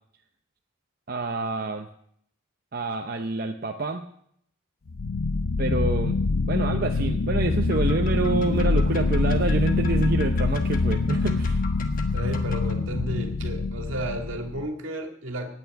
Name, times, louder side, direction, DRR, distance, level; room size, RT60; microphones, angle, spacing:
voice 1, 1.1-1.9 2.7-4.1 5.6-11.6, right 3 dB, 45° right, 4 dB, 0.7 m, -27 dB
sound 1, 4.9-14.7, left 3 dB, 85° left, 0.7 m, -25 dB
sound 2, 7.7-12.7, left 5 dB, 40° left, 1.2 m, -42 dB
voice 2, 12.1-15.5, right 1 dB, 75° right, 4 dB, 2.0 m, -33 dB
9.4 x 9.1 x 9.2 m, 0.70 s
head